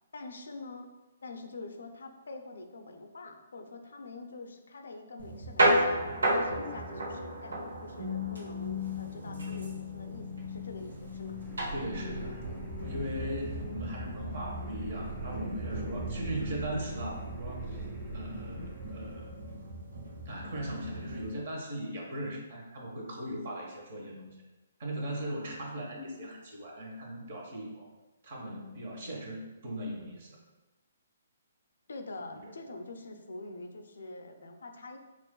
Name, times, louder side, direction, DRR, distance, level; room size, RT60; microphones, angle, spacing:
voice 1, 0.1-0.9 1.2-6.0 6.3-11.4 31.9-35.0, left 2 dB, 75° left, 4 dB, 0.5 m, -45 dB
sound 1, 5.2-21.3, equal, 85° right, 0.9 m, -34 dB
sound 2, 10.0-19.6, right 3 dB, 15° right, 0.9 m, -44 dB
voice 2, 11.7-12.4 12.8-17.8 18.1-19.3 20.2-24.3 24.8-27.9 28.2-30.4 32.3-32.6, equal, 55° right, -2 dB, 1.2 m, -38 dB
5.9 x 2.5 x 2.3 m, 1.1 s
hypercardioid pair, 140°, 0 cm